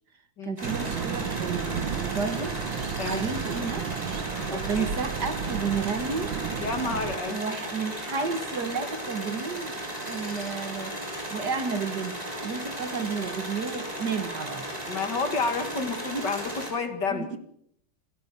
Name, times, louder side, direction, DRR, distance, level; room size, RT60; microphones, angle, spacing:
voice 1, 0.4-2.5 3.1-3.9 4.5-6.4 7.2-11.0 11.3-14.6 17.1-17.4, right 5 dB, 55° right, 9 dB, 2.2 m, -32 dB
sound 1, 0.6-16.7, right 1 dB, 15° right, 6.2 m, -35 dB
sound 2, 0.6-7.2, right 8 dB, 75° right, 1.9 m, -33 dB
voice 2, 4.5-4.9 6.6-7.4 14.9-17.4, left 4 dB, 55° left, 7 dB, 2.8 m, -30 dB
28.0 x 15.5 x 6.9 m, 0.70 s
omnidirectional pair, 2.3 m